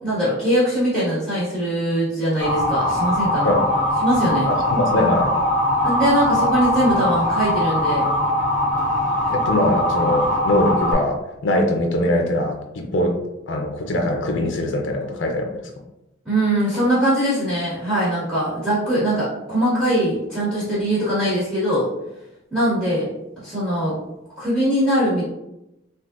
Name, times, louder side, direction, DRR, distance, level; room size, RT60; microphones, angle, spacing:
voice 1, 0.0-3.6 4.0-4.5 5.8-8.0 16.2-21.9 22.5-23.0 23.4-23.9 24.4-25.3, right 1 dB, 5° right, -12 dB, 1.4 m, -21 dB
Motor vehicle (road) / Siren, 2.4-10.9, left 1 dB, 30° right, 1.3 m, -21 dB
voice 2, 4.5-5.3 9.3-13.1 13.5-15.6, left 1 dB, 70° left, 3 dB, 0.5 m, -22 dB
3.7 x 2.5 x 2.4 m, 0.91 s
head